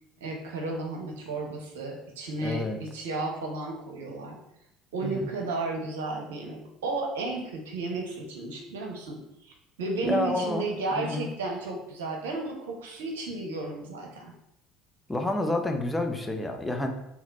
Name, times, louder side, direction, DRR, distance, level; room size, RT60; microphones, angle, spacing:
voice 1, 0.2-4.4 4.9-9.5 9.8-14.3, right 3 dB, 70° right, 1 dB, 0.8 m, -33 dB
voice 2, 2.4-2.8 5.0-5.2 10.0-10.7 10.9-11.3 15.1-16.9, left 2 dB, 10° left, 4 dB, 0.7 m, -29 dB
4.1 x 2.9 x 4.0 m, 0.81 s
figure-of-eight pair, 60°, 0 cm